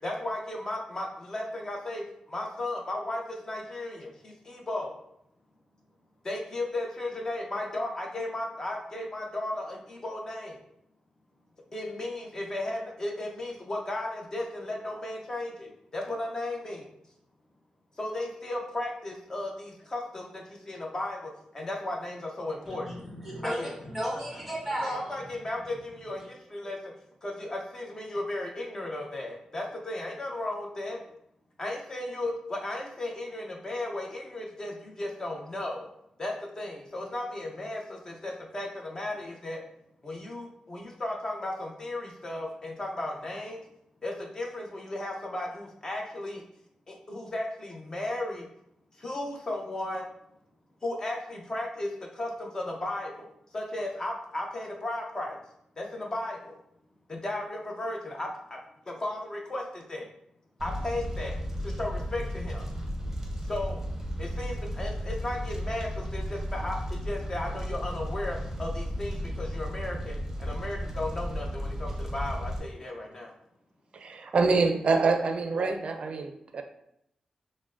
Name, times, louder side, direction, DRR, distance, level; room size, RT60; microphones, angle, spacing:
voice 1, 0.0-5.0 6.2-10.6 11.7-16.9 18.0-22.9 23.4-23.7 24.8-26.9 27.2-31.0 31.6-35.9 36.2-39.6 40.0-43.6 44.0-46.4 46.9-48.5 49.0-50.1 50.8-55.4 55.8-56.6 57.1-58.6 58.9-60.1 60.6-61.3 61.6-62.7 63.4-63.8 64.2-73.3, left 1 dB, 25° left, 0 dB, 0.7 m, -35 dB
voice 2, 22.7-25.2, equal, ahead, -5 dB, 1.4 m, -34 dB
Fire, 60.6-72.6, equal, 15° right, 0.7 m, -34 dB
voice 3, 73.9-76.6, right 4 dB, 55° right, 6 dB, 0.4 m, -26 dB
6.0 x 2.1 x 2.5 m, 0.76 s
wide cardioid pair, 140°, 2 cm